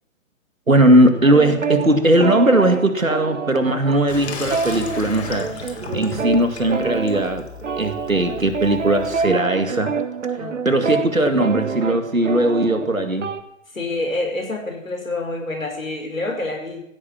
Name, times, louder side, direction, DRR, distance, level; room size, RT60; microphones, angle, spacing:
voice 1, 0.7-7.5 7.8-9.9 10.6-13.3, right 1 dB, 85° right, 7 dB, 2.4 m, -18 dB
sound 1, 1.2-13.4, right 5 dB, 65° right, 1.5 m, -27 dB
Water tap faucet / Sink (filling or washing), 4.1-9.3, left 6 dB, 55° left, 2.5 m, -35 dB
voice 2, 13.7-16.8, left 2 dB, 80° left, 3 dB, 5.0 m, -27 dB
16.0 x 9.6 x 7.5 m, 0.78 s
figure-of-eight pair, 125°, 40 cm